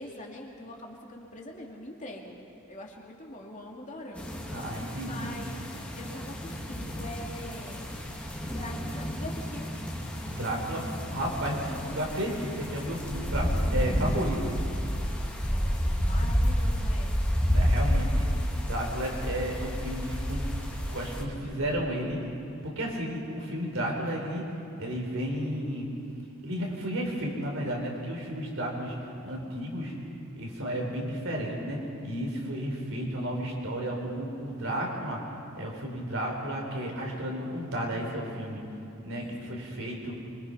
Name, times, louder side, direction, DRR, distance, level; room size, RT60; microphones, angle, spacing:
voice 1, 0.0-2.4 2.7-4.4 5.0-8.0 8.5-9.7 11.7-12.0 15.1-17.1 39.1-39.7, left 1 dB, 35° left, 0 dB, 2.5 m, -43 dB
sound 1, 4.2-21.2, equal, 5° left, 2.5 m, -30 dB
voice 2, 4.5-5.3 10.2-14.6 17.5-18.3 18.6-20.5 20.9-22.2 22.6-24.4 24.8-25.9 26.4-28.9 29.2-29.9 30.4-35.2 35.6-38.6 39.0-40.1, equal, 70° right, 0 dB, 4.6 m, -33 dB
sound 2, 5.5-16.4, equal, 55° left, 2.7 m, -50 dB
25.0 x 23.5 x 5.7 m, 2.8 s
head